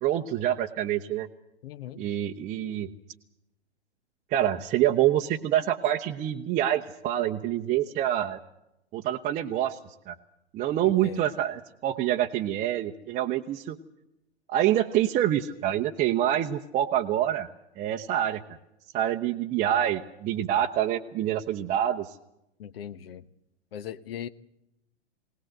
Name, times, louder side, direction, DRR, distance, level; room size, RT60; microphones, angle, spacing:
voice 1, 0.0-1.3 2.0-2.9 4.3-8.4 8.9-9.8 10.1-10.2 10.5-13.8 14.5-17.5 17.8-18.4 18.9-22.2, right 11 dB, 25° right, 2 dB, 0.8 m, -26 dB
voice 2, 1.6-2.0 10.8-11.3 22.6-23.2 23.7-24.3, left 10 dB, 60° left, 15 dB, 1.1 m, -39 dB
20.5 x 18.5 x 7.9 m, 0.86 s
figure-of-eight pair, 110°, 34 cm